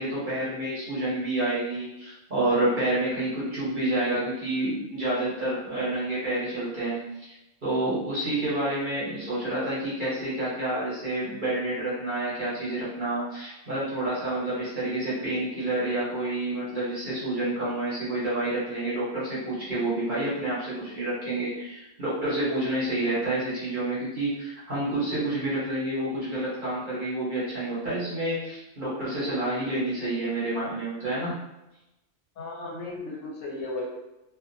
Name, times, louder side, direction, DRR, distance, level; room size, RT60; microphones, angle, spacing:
voice 1, 0.0-7.3 7.6-31.4, right 1 dB, 40° right, -10 dB, 1.0 m, -29 dB
voice 2, 3.7-4.3 32.4-33.9, left 2 dB, 70° left, -3 dB, 0.9 m, -36 dB
2.5 x 2.4 x 2.6 m, 0.94 s
omnidirectional pair, 1.4 m